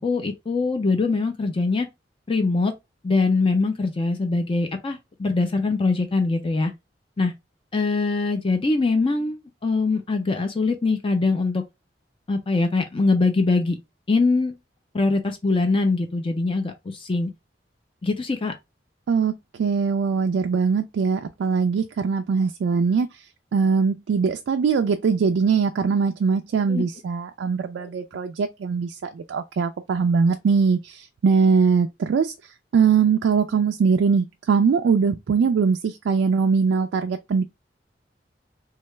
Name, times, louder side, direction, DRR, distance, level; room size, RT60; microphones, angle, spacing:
voice 1, 0.0-1.9 2.3-2.7 3.0-6.7 7.2-7.3 7.7-11.6 12.3-13.8 14.1-14.6 14.9-17.3 18.0-18.5 26.7-26.8 27.8-27.9, left 3 dB, 30° left, 0.4 m, -23 dB
voice 2, 19.6-23.1 23.5-32.3 32.7-37.4, right 5 dB, 85° right, 0.3 m, -21 dB
3.1 x 2.3 x 3.1 m
head